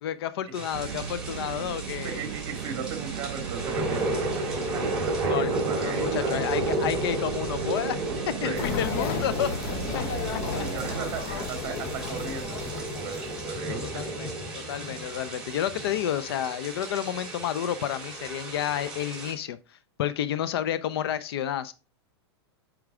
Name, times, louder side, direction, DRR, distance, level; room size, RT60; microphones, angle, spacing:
voice 1, 0.0-2.2 5.3-10.0 10.5-10.6 13.7-14.3 14.5-21.7, left 10 dB, 65° left, 0.6 m, -31 dB
sound 1, 0.5-19.3, right 2 dB, 5° right, 2.8 m, -33 dB
sound 2, 0.7-11.2, right 10 dB, 80° right, 0.7 m, -36 dB
voice 2, 2.0-6.4 8.4-8.8 10.3-14.1, right 7 dB, 30° right, 1.8 m, -38 dB
sound 3, 8.5-13.6, left 7 dB, 40° left, 0.8 m, -34 dB
8.8 x 4.7 x 3.6 m
hypercardioid pair, 140°, 14 cm